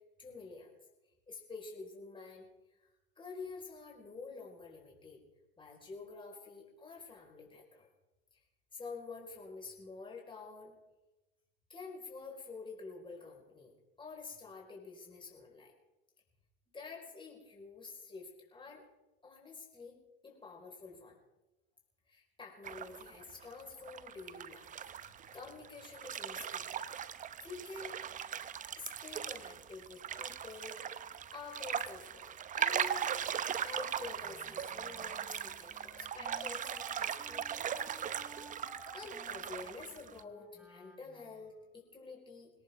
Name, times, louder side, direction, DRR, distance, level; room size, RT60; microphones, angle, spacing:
voice 1, 0.2-0.7 1.3-2.5 2.8-2.9 3.2-5.2 5.6-7.9 8.3-8.4 8.7-10.7 11.7-15.7 16.7-18.8 19.2-20.0 20.2-21.2 22.1-24.7 25.1-26.8 27.4-27.9 28.8-37.7 38.9-42.5, left 4 dB, 15° left, -1 dB, 4.8 m, -49 dB
sound 1, 22.6-23.6 23.9-40.2, right 9 dB, 25° right, 0.7 m, -39 dB
Wind instrument woodwind instrument, 34.2-41.5, equal, 5° right, 3.3 m, -57 dB
22.5 x 18.0 x 3.6 m, 1.0 s
hypercardioid pair, 95°, 30 cm